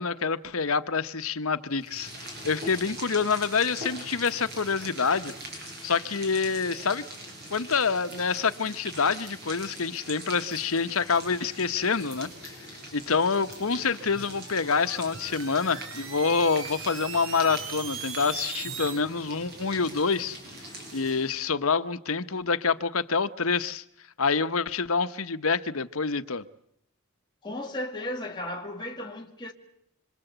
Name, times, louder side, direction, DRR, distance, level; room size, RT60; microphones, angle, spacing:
voice 1, 0.0-5.3 5.8-7.0 7.5-12.5 12.9-20.4 20.9-23.8 24.2-26.4, left 5 dB, 80° left, 1.1 m, -27 dB
sound 1, 1.8-21.4, right 1 dB, 50° right, 7.7 m, -42 dB
sound 2, 14.2-19.0, right 8 dB, 65° right, 1.6 m, -39 dB
voice 2, 27.4-29.5, left 1 dB, 20° left, 2.1 m, -35 dB
26.0 x 25.5 x 8.1 m
head